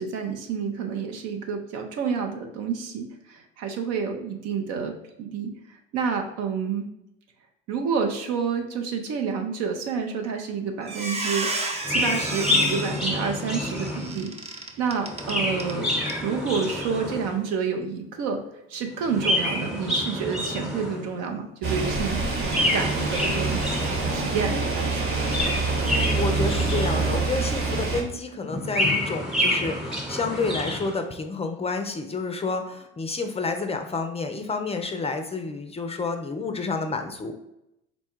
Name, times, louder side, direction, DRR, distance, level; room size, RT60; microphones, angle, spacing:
voice 1, 0.0-5.5 5.9-6.9 7.7-14.3 14.8-15.9 16.2-18.4 18.7-23.6 24.1-25.2, right 6 dB, 60° right, 4 dB, 0.8 m, -29 dB
Squeak, 10.2-10.5 10.8-15.8 16.1-16.2 16.6-16.8, right 2 dB, 20° right, 0.7 m, -32 dB
Chirp tweet, 11.8-14.3 15.0-17.4 19.0-21.2 22.4-24.3 25.1-27.4 28.4-31.0, left 1 dB, ahead, 1.1 m, -28 dB
sound 1, 21.6-28.0, right 3 dB, 45° right, 1.3 m, -26 dB
voice 2, 25.8-37.3, left 3 dB, 20° left, 6 dB, 0.5 m, -29 dB
4.2 x 2.2 x 4.4 m, 0.84 s
hypercardioid pair, 65°, 29 cm